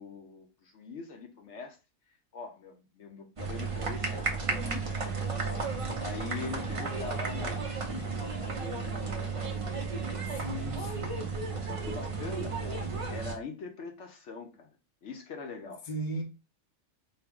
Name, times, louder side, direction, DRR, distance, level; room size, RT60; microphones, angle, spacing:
voice 1, 0.0-1.8 2.3-5.6 6.0-9.5 10.5-10.7 11.6-14.7 15.0-15.9, left 4 dB, 60° left, 1.0 m, -43 dB
sound 1, 3.4-13.4, right 4 dB, 50° right, 0.4 m, -33 dB
voice 2, 10.3-11.2 15.9-16.2, right 1 dB, 35° left, 0.7 m, -36 dB
4.5 x 2.1 x 3.5 m
omnidirectional pair, 1.5 m